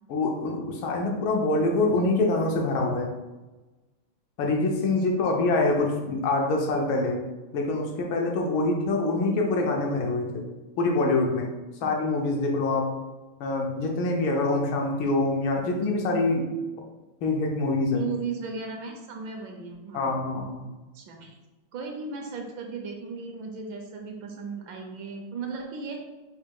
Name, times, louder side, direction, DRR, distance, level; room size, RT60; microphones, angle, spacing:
voice 1, 0.1-3.1 4.4-7.2 7.5-10.4 10.8-11.5 11.8-12.9 13.4-16.5 17.2-18.0 19.9-20.6, left 2 dB, 80° left, 1 dB, 1.5 m, -25 dB
voice 2, 17.9-20.1 20.9-21.3 21.7-26.0, right 5 dB, 75° right, 2 dB, 1.3 m, -36 dB
4.4 x 2.2 x 4.5 m, 1.1 s
omnidirectional pair, 2.2 m